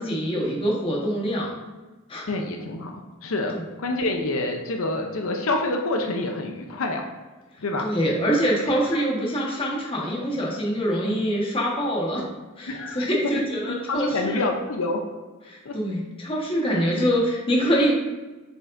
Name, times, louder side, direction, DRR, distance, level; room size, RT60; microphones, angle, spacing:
voice 1, 0.0-1.5 2.1-2.3 3.5-3.6 7.8-12.3 12.6-14.5 15.5-17.9, equal, 25° left, -3 dB, 1.3 m, -25 dB
voice 2, 2.3-2.9 3.2-7.1 7.6-7.9 8.7-8.8 12.7-13.4 13.7-15.0 15.6-15.7 16.7-16.8, left 2 dB, 80° left, 2 dB, 0.7 m, -27 dB
7.7 x 5.2 x 2.6 m, 1.2 s
head